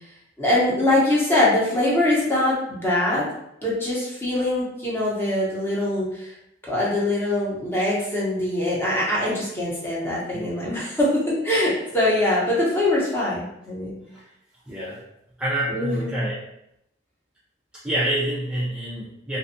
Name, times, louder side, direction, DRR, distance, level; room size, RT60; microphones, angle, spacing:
voice 1, 0.4-3.3 3.6-6.3 6.6-14.0 15.7-16.1, left 1 dB, 10° left, -6 dB, 0.7 m, -23 dB
voice 2, 14.7-15.0 15.4-16.4 17.8-19.4, right 1 dB, 5° right, -8 dB, 0.4 m, -27 dB
2.5 x 2.2 x 2.6 m, 0.80 s
head